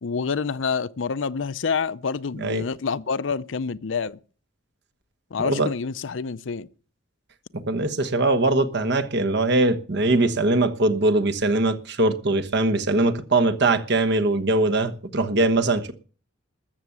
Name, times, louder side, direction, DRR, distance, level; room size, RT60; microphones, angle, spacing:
voice 1, 0.0-4.2 5.3-6.7, left 5 dB, 70° left, 0.6 m, -27 dB
voice 2, 7.5-15.9, right 2 dB, 60° right, 1.3 m, -21 dB
13.5 x 7.2 x 8.1 m
head